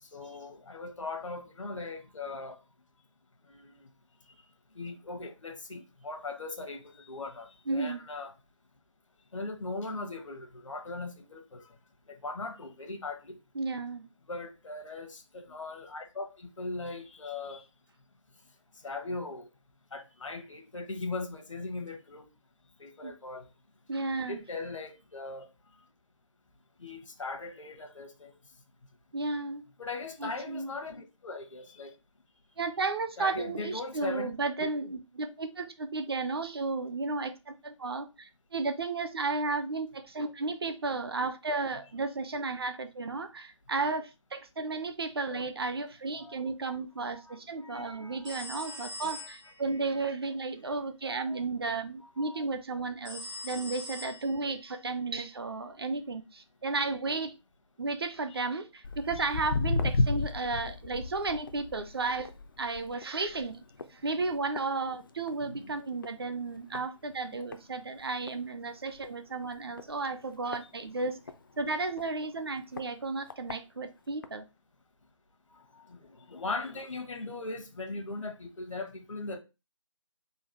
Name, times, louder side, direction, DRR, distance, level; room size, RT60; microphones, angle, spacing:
voice 1, 0.0-2.6 3.5-3.9 4.7-8.3 9.3-11.8 12.1-13.4 14.3-17.6 18.8-19.5 19.9-22.3 22.8-23.5 24.1-25.5 26.8-28.3 29.8-31.9 33.2-34.3 34.6-34.7 45.3-45.4 46.2-46.3 46.7-46.8 47.1-50.1 50.6-50.7 51.0-51.4 52.2-52.4 59.2-59.3 65.4-65.8 66.7-66.8 75.5-79.4, left 3 dB, 70° left, 0.9 m, -40 dB
voice 2, 7.7-8.0 13.5-14.0 23.0-23.1 23.9-24.4 29.1-29.6 30.2-30.7 32.6-57.3 57.8-62.3 62.6-63.6 63.9-71.2 71.6-74.4, right 3 dB, 50° right, 0.5 m, -33 dB
sound 1, 48.3-49.6 53.1-54.6, left 2 dB, 65° right, 1.0 m, -42 dB
Walk footsteps, 58.8-65.5 65.8-66.2 66.7-66.8 67.5-67.6 68.0-68.1 68.3-68.4 68.9-69.1 69.8-71.4 72.0-72.1 72.8-72.9 73.3-73.6 74.2-74.3, left 3 dB, 40° left, 0.4 m, -33 dB
3.8 x 2.3 x 4.3 m
figure-of-eight pair, 155°, 17 cm